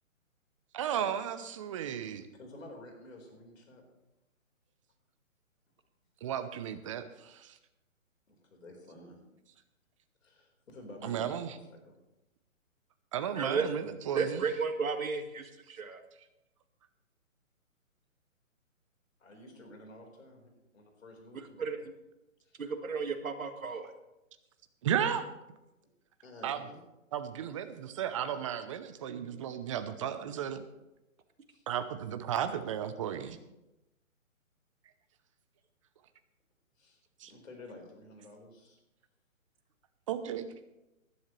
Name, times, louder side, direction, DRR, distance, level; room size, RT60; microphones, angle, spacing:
voice 1, 0.7-2.3 6.2-7.6 11.0-11.5 13.1-14.4 24.8-25.3 26.4-26.6 27.1-30.6 31.7-33.4 37.2-37.3 40.1-40.5, right 9 dB, 25° right, 10 dB, 0.7 m, -34 dB
voice 2, 2.4-3.8 8.3-9.2 10.2-11.9 19.2-21.6 22.4-22.6 26.2-26.8 29.1-29.3 31.5-31.6 36.8-37.0 37.3-38.8, left 1 dB, 70° left, 2 dB, 4.6 m, -51 dB
voice 3, 14.1-16.0 21.6-21.8 22.6-23.9, right 5 dB, 75° right, 6 dB, 1.9 m, -33 dB
19.0 x 11.0 x 3.3 m, 0.95 s
hypercardioid pair, 145°, 41 cm